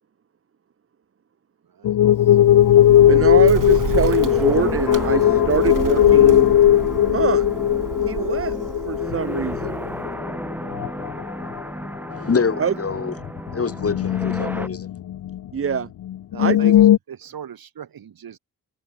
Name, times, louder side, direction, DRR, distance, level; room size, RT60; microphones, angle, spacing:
sound 1, 1.8-10.4 10.7-11.2 11.6-11.7 12.1-12.2 13.2-15.4 15.7-15.8 16.1-17.0, left 11 dB, 75° left, 0.7 m, -17 dB
Bird, 2.2-10.0, right 8 dB, 65° right, 1.7 m, -32 dB
sound 2, 3.0-14.7, right 1 dB, 5° right, 6.4 m, -33 dB
voice 1, 3.1-6.5 7.1-7.5 8.1-8.6 8.8-9.8 12.6-12.7 15.5-15.9 16.4-16.8, right 7 dB, 40° right, 0.8 m, -24 dB
voice 2, 12.1-13.1 13.5-14.9, left 5 dB, 40° left, 2.2 m, -25 dB
voice 3, 16.3-18.4, right 8 dB, 85° right, 3.2 m, -40 dB
wide cardioid pair, 100°, 35 cm